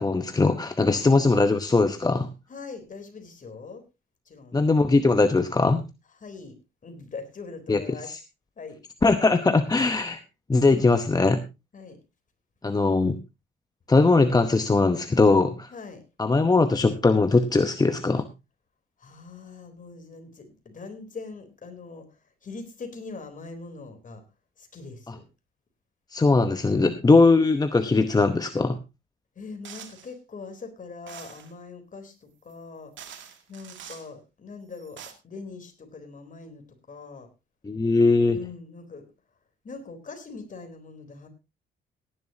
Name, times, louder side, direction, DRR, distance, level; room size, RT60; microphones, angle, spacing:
voice 1, 0.0-2.3 4.5-5.8 7.7-7.8 8.1-8.2 9.0-10.2 10.5-11.4 12.6-13.2 13.9-15.7 16.2-18.3 26.1-28.8 37.6-38.4, left 3 dB, 20° left, 9 dB, 0.9 m, -20 dB
voice 2, 2.5-3.8 4.3-4.6 6.2-8.1 8.6-8.8 11.7-12.0 15.7-16.0 19.0-24.2 24.6-25.2 26.7-27.0 29.4-32.9 33.5-37.3 38.3-39.1 39.6-41.3, left 4 dB, 40° left, 7 dB, 3.7 m, -42 dB
sound 1, 29.6-30.1 31.1-31.5 32.5-32.6 33.0-34.1 34.7-35.1, right 8 dB, 70° right, 2.2 m, -44 dB
17.0 x 11.0 x 2.8 m, 0.25 s
cardioid pair, 90°, 20 cm